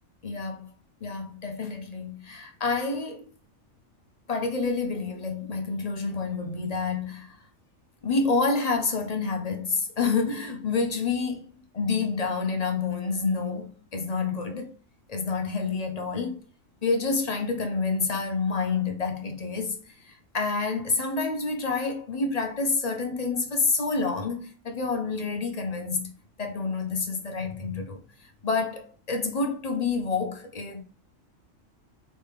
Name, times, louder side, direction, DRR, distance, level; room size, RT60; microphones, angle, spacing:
voice 1, 0.2-0.7 1.0-3.3 4.3-7.4 8.0-11.5 11.7-14.7 15.1-16.4 16.8-19.8 20.0-26.1 26.4-30.8, left 4 dB, 40° left, 0.6 m, -28 dB
4.0 x 3.4 x 3.5 m
omnidirectional pair, 1.4 m